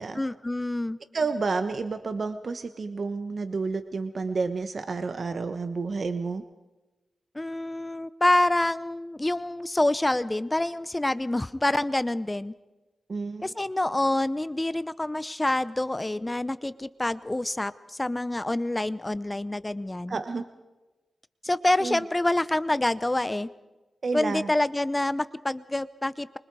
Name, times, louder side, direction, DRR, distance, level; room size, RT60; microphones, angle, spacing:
voice 1, 0.2-1.0 7.3-12.5 13.4-20.2 21.4-23.5 24.1-26.4, left 1 dB, 15° left, 16 dB, 0.7 m, -27 dB
voice 2, 1.1-6.4 13.1-13.5 20.1-20.4 21.8-22.0 24.0-24.5, right 4 dB, 50° right, 9 dB, 1.2 m, -30 dB
25.0 x 24.5 x 4.8 m, 1.1 s
wide cardioid pair, 95°, 0 cm